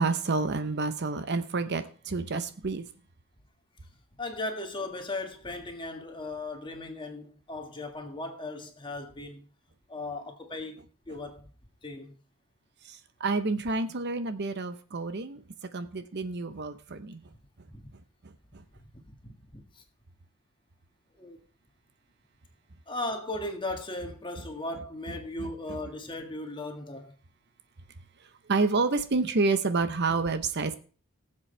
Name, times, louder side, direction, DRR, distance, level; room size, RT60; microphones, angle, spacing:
voice 1, 0.0-2.8 12.9-15.4 15.7-17.2 25.4-25.8 28.5-30.8, right 3 dB, 50° right, 0.8 m, -29 dB
voice 2, 4.2-9.5 9.9-11.5 11.8-12.2 17.7-17.9 19.0-19.1 19.5-19.8 21.2-21.4 22.9-27.1, left 2 dB, 20° left, 1.7 m, -37 dB
19.5 x 7.6 x 3.3 m
head